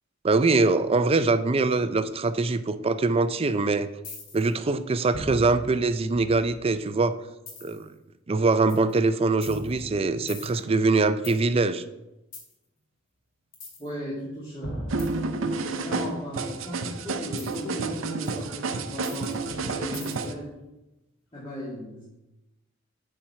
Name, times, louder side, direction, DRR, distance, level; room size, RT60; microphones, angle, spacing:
voice 1, 0.2-3.9 4.3-7.1 7.6-7.9 8.3-11.8, right 3 dB, 30° right, 12 dB, 0.4 m, -23 dB
sound 1, 4.0-4.5 5.1-6.7 7.5-7.9 8.7-8.9 9.4-11.4 12.3-12.5 13.5-13.9 14.6-15.8 17.4-17.6 18.2-18.3 19.0-20.4, left 1 dB, 70° left, 2.2 m, -39 dB
voice 2, 13.8-15.0 15.6-20.5 21.3-22.0, equal, 25° left, -8 dB, 2.2 m, -36 dB
sound 2, 14.9-20.3, right 3 dB, 75° right, 0.6 m, -30 dB
8.6 x 4.5 x 5.7 m, 0.96 s
head